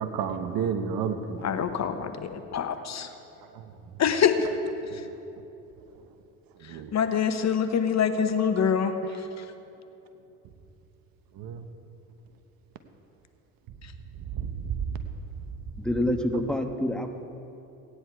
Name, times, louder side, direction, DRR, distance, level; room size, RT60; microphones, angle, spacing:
voice 1, 0.0-1.5 3.0-3.1 3.5-3.7 4.8-5.0 6.6-6.9 9.0-9.2 11.3-11.7 14.2-15.0 16.0-16.4, right 7 dB, 60° right, 8 dB, 1.2 m, -32 dB
voice 2, 1.4-3.1 4.0-4.4 6.9-8.9, left 7 dB, 40° left, 8 dB, 1.0 m, -25 dB
voice 3, 15.8-17.2, left 1 dB, ahead, 4 dB, 1.3 m, -27 dB
17.0 x 9.9 x 4.7 m, 2.8 s
hypercardioid pair, 65°, 40 cm